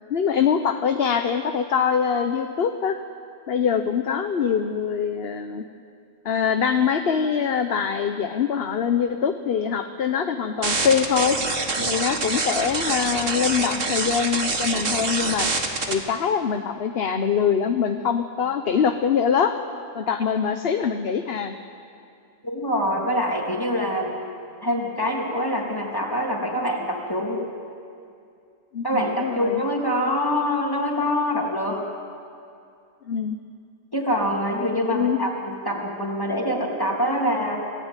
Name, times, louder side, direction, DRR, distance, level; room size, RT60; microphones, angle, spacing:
voice 1, 0.1-3.0 3.5-5.6 6.2-11.4 11.9-15.5 15.9-19.5 19.9-21.5 28.7-29.6 33.1-33.4 34.9-35.2, left 7 dB, 55° left, 7 dB, 1.1 m, -23 dB
sound 1, 10.6-15.9, right 3 dB, 75° right, 2.3 m, -25 dB
voice 2, 22.4-24.2 24.6-27.5 28.8-31.8 33.9-37.6, equal, 15° left, -1 dB, 3.0 m, -25 dB
27.0 x 16.0 x 9.0 m, 2.5 s
omnidirectional pair, 1.3 m